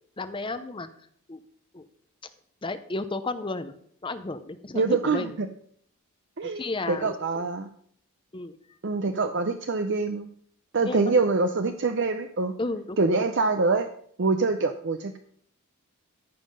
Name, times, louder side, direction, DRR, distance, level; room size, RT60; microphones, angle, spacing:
voice 1, 0.2-0.9 1.3-1.4 1.7-1.8 2.6-3.7 4.0-5.3 6.6-7.4 8.3-8.6 10.9-11.1 12.6-13.0, left 2 dB, 20° left, 11 dB, 0.6 m, -33 dB
voice 2, 4.7-5.5 6.4-7.7 8.8-10.3 10.7-12.5 13.0-13.9 14.2-15.2, right 3 dB, 50° right, 8 dB, 0.6 m, -25 dB
14.0 x 5.6 x 5.4 m, 0.63 s
head